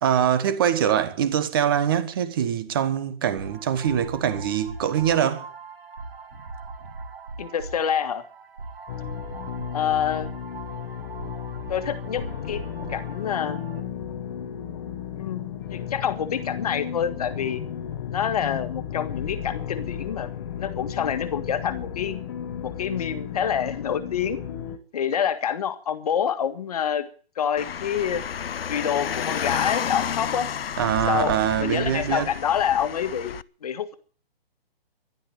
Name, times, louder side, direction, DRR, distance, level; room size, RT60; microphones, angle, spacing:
voice 1, 0.0-5.5 30.8-32.3, right 9 dB, 25° right, 1.1 m, -23 dB
sound 1, 3.4-13.8, right 3 dB, 75° right, 4.4 m, -40 dB
voice 2, 7.4-8.2 9.7-10.3 11.7-12.6 12.9-13.6 15.1-15.4 15.7-17.6 18.1-20.3 20.6-22.2 22.6-24.4 24.9-27.0 27.4-28.2 28.7-30.5 31.1-33.3 33.6-33.9, left 8 dB, 40° left, 1.7 m, -27 dB
sound 2, 8.9-24.8, left 9 dB, 25° left, 1.0 m, -34 dB
Car, 27.6-33.4, left 8 dB, 70° left, 0.8 m, -31 dB
12.0 x 12.0 x 9.2 m
hypercardioid pair, 170°, 31 cm